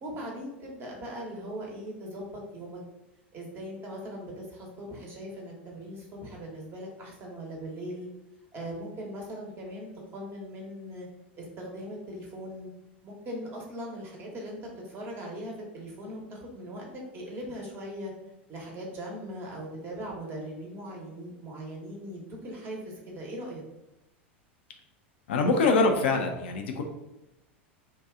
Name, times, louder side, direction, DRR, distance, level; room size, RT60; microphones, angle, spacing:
voice 1, 0.0-2.8 3.3-8.1 8.5-11.1 11.4-12.7 13.0-16.9 17.1-18.1 18.5-23.6, equal, 35° right, -1 dB, 1.1 m, -40 dB
voice 2, 25.3-26.8, left 3 dB, 70° left, 3 dB, 0.5 m, -24 dB
2.7 x 2.3 x 3.5 m, 0.93 s
hypercardioid pair, 90°, 6 cm